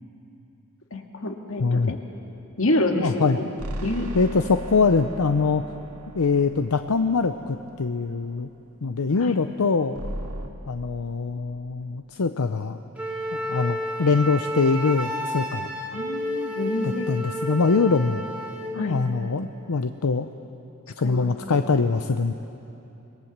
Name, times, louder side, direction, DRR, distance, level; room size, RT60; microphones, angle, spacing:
voice 1, 0.9-2.0 2.6-3.5 3.8-4.1 9.2-9.4 15.9-17.1 18.7-19.0 21.0-21.6, left 1 dB, 65° left, 4 dB, 1.9 m, -28 dB
voice 2, 1.6-1.9 3.0-3.4 4.1-5.6 6.1-8.5 8.8-10.0 10.7-12.8 13.3-15.7 16.8-18.3 18.7-20.3 21.0-22.3, left 4 dB, 85° left, 8 dB, 0.7 m, -23 dB
sound 1, 3.6-8.1 10.0-10.5, right 1 dB, 85° right, 1.9 m, -37 dB
Wind instrument woodwind instrument, 13.0-18.8, equal, 5° right, 2.2 m, -31 dB
26.5 x 20.0 x 7.4 m, 2.9 s
head